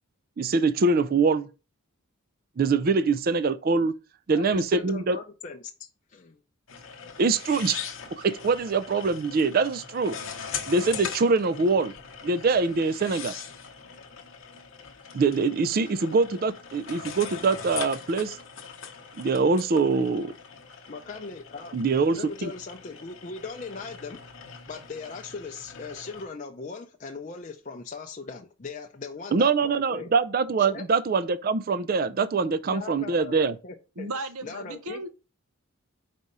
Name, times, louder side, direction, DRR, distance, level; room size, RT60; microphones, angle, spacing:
voice 1, 0.4-1.5 2.6-3.9 4.3-5.2 7.2-7.8 8.1-10.1 10.7-11.9 12.2-13.3 15.1-18.4 19.2-20.3 21.7-22.5 29.3-33.6, right 4 dB, 40° right, 0.4 m, -24 dB
voice 2, 4.3-6.4 20.9-21.7 22.1-24.2 24.7-30.1 30.6-30.8 32.7-33.3 33.6-34.1 34.4-35.1, left 4 dB, 35° left, 0.5 m, -39 dB
sound 1, 6.7-26.3, left 7 dB, 60° left, 0.9 m, -41 dB
voice 3, 34.0-35.1, right 2 dB, 85° right, 0.8 m, -35 dB
4.7 x 4.2 x 5.2 m
head